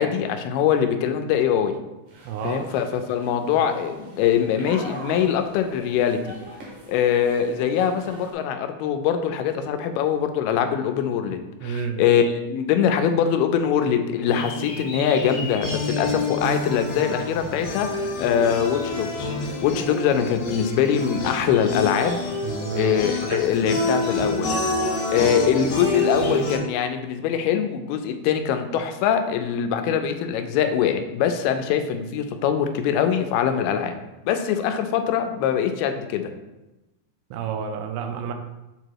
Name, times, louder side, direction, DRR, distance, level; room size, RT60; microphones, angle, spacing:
voice 1, 0.0-1.7 2.4-6.2 6.9-19.3 19.6-22.2 22.8-24.5 25.1-34.0 34.3-36.3, left 8 dB, 85° left, 7 dB, 2.5 m, -23 dB
sound 1, 2.1-8.3, right 1 dB, 60° right, 2.5 m, -42 dB
voice 2, 2.3-2.7 11.6-12.0 22.4-22.9 23.2-23.5 37.3-38.3, right 7 dB, 90° right, 5 dB, 2.6 m, -30 dB
sound 2, 14.3-26.6, left 2 dB, 65° left, 2.3 m, -28 dB
sound 3, 14.3-16.2 18.1-19.2 20.0-26.4, left 1 dB, 35° left, 1.4 m, -41 dB
7.3 x 3.0 x 4.6 m, 0.98 s
omnidirectional pair, 4.4 m